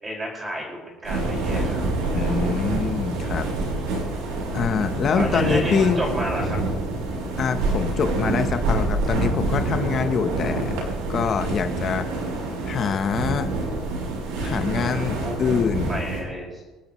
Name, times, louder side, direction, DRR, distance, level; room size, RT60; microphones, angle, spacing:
voice 1, 0.0-1.8 5.1-6.6 15.1-15.3 15.7-16.6, equal, 15° right, -3 dB, 5.1 m, -31 dB
sound 1, 1.0-16.2, right 2 dB, 75° right, 6.3 m, -26 dB
voice 2, 2.1-3.4 4.5-6.1 7.4-10.7 11.1-12.1 12.6-13.5 14.4-16.0, left 7 dB, 30° left, 8 dB, 0.8 m, -25 dB
27.0 x 12.5 x 3.1 m, 1.3 s
cardioid pair, 175°, 0 cm